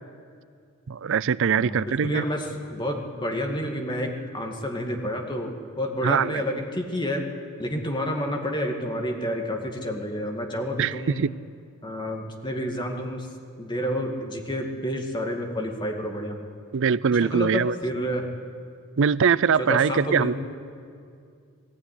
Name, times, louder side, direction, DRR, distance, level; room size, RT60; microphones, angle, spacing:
voice 1, 0.9-2.2 6.0-6.3 10.8-11.3 16.7-17.7 19.0-20.3, right 6 dB, 60° right, 0.4 m, -22 dB
voice 2, 1.6-7.3 7.6-11.2 11.8-13.3 13.6-16.4 17.2-18.3 19.6-20.3, equal, 20° left, 2.1 m, -29 dB
19.0 x 16.0 x 9.8 m
head